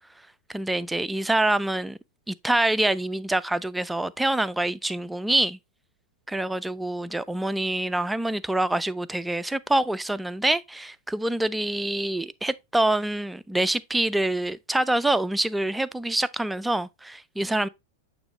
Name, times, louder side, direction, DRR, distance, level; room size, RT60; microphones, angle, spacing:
voice 1, 0.5-2.0 2.3-5.6 6.3-17.7, right 1 dB, 5° right, 0.3 m, -26 dB
8.8 x 3.1 x 3.4 m
figure-of-eight pair, 90°, 0 cm